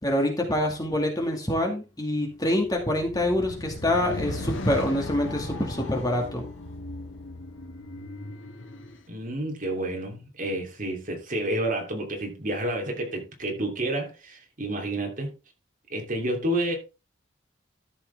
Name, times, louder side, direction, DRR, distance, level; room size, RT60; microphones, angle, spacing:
voice 1, 0.0-6.5, left 1 dB, 20° left, 2.2 m, -26 dB
sound 1, 2.5-9.0, left 2 dB, 85° left, 1.6 m, -37 dB
voice 2, 9.1-15.3 15.9-16.7, right 1 dB, 45° right, 3.0 m, -30 dB
13.0 x 6.7 x 3.5 m
head